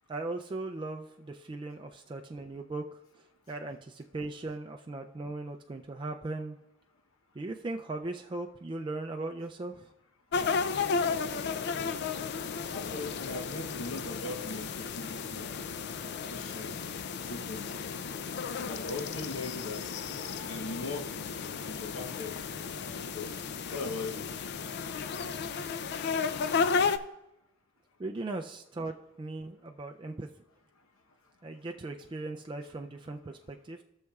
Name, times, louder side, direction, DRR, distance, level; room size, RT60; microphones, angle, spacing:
voice 1, 0.1-3.0 3.5-6.6 7.3-9.9 28.0-30.3 31.4-33.8, right 2 dB, 25° right, 0.3 m, -38 dB
sound 1, 10.3-27.0, left 5 dB, 55° left, 0.4 m, -33 dB
voice 2, 12.7-15.6 16.3-16.7 17.3-17.8 18.6-19.9 20.4-21.1 21.6-23.3 23.7-24.3, left 3 dB, 85° left, 0.9 m, -39 dB
17.5 x 6.5 x 2.3 m
head